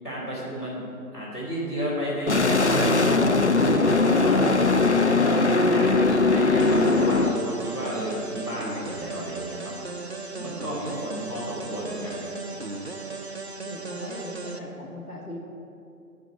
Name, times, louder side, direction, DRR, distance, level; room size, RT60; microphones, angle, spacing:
voice 1, 0.0-0.9 1.1-4.7 5.2-9.7 10.3-12.4, equal, 10° left, -12 dB, 2.8 m, -32 dB
sound 1, 2.3-7.3, left 3 dB, 50° left, 0.5 m, -20 dB
sound 2, 6.6-14.6, right 3 dB, 45° right, 0.5 m, -36 dB
voice 2, 13.6-15.4, left 1 dB, 70° left, -2 dB, 2.0 m, -39 dB
13.5 x 5.1 x 6.0 m, 2.6 s
figure-of-eight pair, 155°, 47 cm